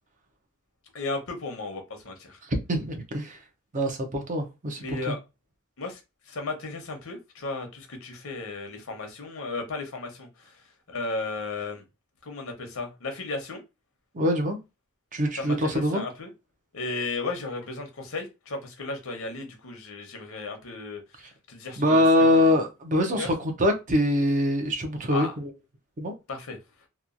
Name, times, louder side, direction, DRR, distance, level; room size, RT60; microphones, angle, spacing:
voice 1, 0.9-2.4 4.8-5.2 5.8-6.0 6.3-10.3 10.9-11.8 12.2-13.6 15.4-16.3 16.7-22.0 22.3-22.6 23.2-23.3 25.1-25.3 26.3-26.6, left 3 dB, 75° left, 0.8 m, -34 dB
voice 2, 2.4-3.4 3.7-5.1 14.1-14.6 15.1-16.0 21.8-25.5 26.0-26.1, left 1 dB, 40° right, 0.6 m, -24 dB
2.9 x 2.3 x 2.5 m
head